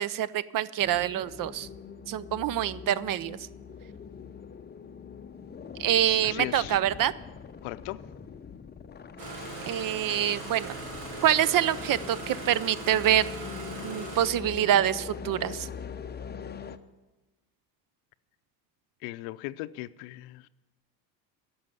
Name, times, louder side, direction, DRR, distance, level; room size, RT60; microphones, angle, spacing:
voice 1, 0.0-1.7 2.1-3.4 5.8-7.1 9.7-10.7 11.2-13.3 13.8-15.7, right 11 dB, 45° right, 0.5 m, -26 dB
sound 1, 0.8-16.8, left 6 dB, 20° left, 0.6 m, -43 dB
voice 2, 6.2-6.8 7.6-8.0 19.0-20.5, left 18 dB, 75° left, 0.6 m, -37 dB
Engine starting, 9.2-14.3, right 2 dB, 70° right, 2.9 m, -39 dB
11.0 x 7.1 x 9.2 m
supercardioid pair, 70°, 49 cm